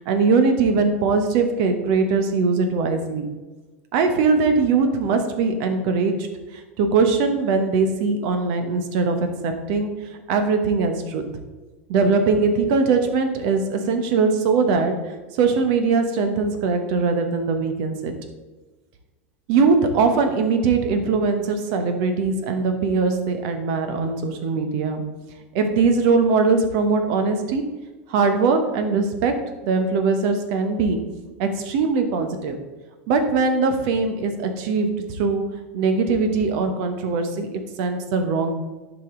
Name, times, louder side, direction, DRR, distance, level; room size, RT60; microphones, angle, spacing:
voice 1, 0.1-3.3 3.9-11.2 11.9-18.1 19.5-25.0 25.5-27.6 28.1-29.3 29.6-31.0 31.4-32.6 33.1-35.4 35.7-38.5, right 4 dB, 50° right, 7 dB, 1.1 m, -21 dB
11.0 x 5.1 x 3.8 m, 1.2 s
figure-of-eight pair, 85°, 7 cm